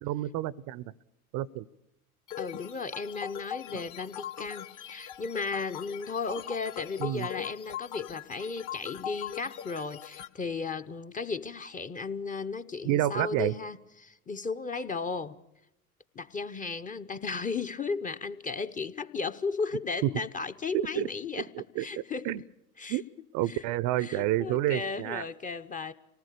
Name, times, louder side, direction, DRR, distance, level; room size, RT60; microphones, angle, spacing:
voice 1, 0.0-0.8 1.3-1.7 7.0-7.3 12.8-13.5 20.7-21.1 21.6-21.8 22.2-22.4 22.9-23.0 23.3-25.2, right 14 dB, 45° right, 22 dB, 0.7 m, -29 dB
sound 1, 2.3-10.3, left 10 dB, 45° left, 1.6 m, -41 dB
voice 2, 2.4-15.4 16.1-22.3 22.8-23.0 23.5-23.6 24.0-25.9, left 4 dB, 20° left, 9 dB, 0.8 m, -35 dB
25.5 x 19.0 x 6.7 m, 0.89 s
hypercardioid pair, 85°, 45 cm